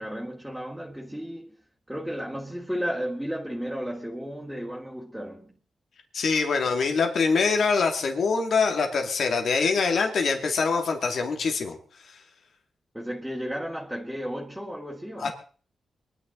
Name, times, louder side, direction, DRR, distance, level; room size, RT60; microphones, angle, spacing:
voice 1, 0.0-1.5 1.9-5.6 12.9-15.3, equal, 5° right, 2.6 m, -33 dB
voice 2, 6.1-11.8 12.1-12.2 15.2-15.3, left 4 dB, 75° left, 2.6 m, -24 dB
23.5 x 10.5 x 4.0 m
cardioid pair, 65°, 0 cm